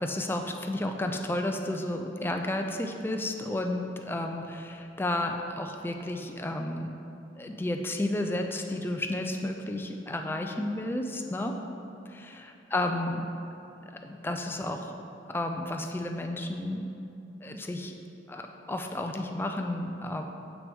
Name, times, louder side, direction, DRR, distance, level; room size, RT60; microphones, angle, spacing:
voice 1, 0.0-6.9 7.4-11.6 12.1-13.3 14.0-15.0 15.3-16.9 17.4-18.0 18.3-18.4 18.7-20.2, left 1 dB, 10° left, 4 dB, 0.4 m, -32 dB
7.6 x 6.0 x 3.5 m, 2.8 s
head